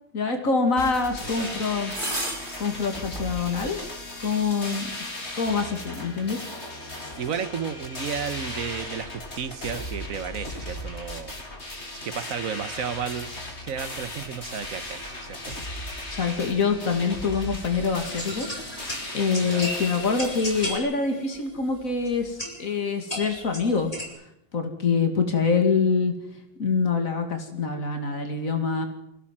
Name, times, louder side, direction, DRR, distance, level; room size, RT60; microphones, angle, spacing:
voice 1, 0.1-1.9 2.6-3.8 4.2-4.9 5.3-6.4 16.1-23.9 24.5-26.1 26.6-28.9, left 5 dB, 85° left, 5 dB, 2.8 m, -25 dB
sound 1, 0.8-20.8, left 1 dB, 55° left, 4.1 m, -37 dB
voice 2, 1.2-1.6 7.2-11.4 12.0-15.6 19.4-19.7, right 7 dB, 85° right, 13 dB, 1.6 m, -33 dB
sound 2, 1.3-1.4 1.9-2.7 3.2-3.3 4.4-4.5, right 1 dB, 40° right, 5.2 m, -31 dB
sound 3, 18.0-24.1, left 1 dB, 30° left, 5.5 m, -36 dB
24.5 x 16.0 x 7.5 m, 0.79 s
omnidirectional pair, 1.4 m